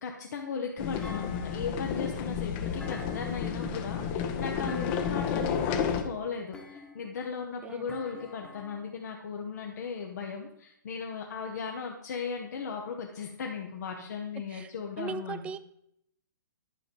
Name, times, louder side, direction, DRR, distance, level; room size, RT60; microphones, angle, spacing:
voice 1, 0.0-15.4, left 5 dB, 55° left, 1 dB, 1.0 m, -37 dB
sound 1, 0.8-6.0, left 7 dB, 30° left, 0.9 m, -31 dB
Thump thud, 1.0-1.9 2.8-3.7 4.7-5.4 6.5-7.2 7.9-8.9, left 4 dB, 10° left, 1.3 m, -48 dB
voice 2, 7.3-8.0 14.5-14.7 15.0-15.6, right 6 dB, 10° right, 14 dB, 0.3 m, -40 dB
11.0 x 5.2 x 5.2 m, 0.76 s
figure-of-eight pair, 120°, 11 cm